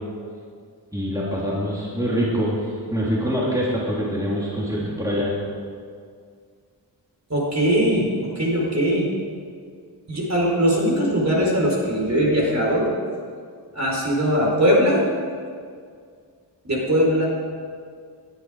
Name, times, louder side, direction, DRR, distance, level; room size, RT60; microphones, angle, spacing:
voice 1, 0.9-5.3, equal, 10° right, -6 dB, 3.3 m, -24 dB
voice 2, 7.3-9.1 10.1-12.9 13.7-15.0 16.6-17.3, equal, 40° right, -2 dB, 4.3 m, -20 dB
18.5 x 13.0 x 5.0 m, 2.1 s
wide cardioid pair, 100°, 42 cm